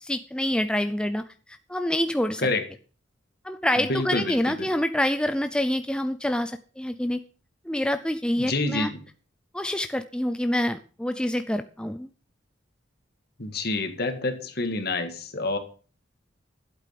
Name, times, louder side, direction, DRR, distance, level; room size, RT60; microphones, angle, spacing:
voice 1, 0.0-1.2 1.7-2.5 3.4-7.2 7.7-8.9 9.5-12.1, left 1 dB, 5° left, 9 dB, 0.5 m, -26 dB
voice 2, 3.9-4.7 8.4-9.0 13.4-15.6, left 2 dB, 55° left, 7 dB, 2.0 m, -28 dB
12.0 x 8.3 x 5.9 m, 0.39 s
head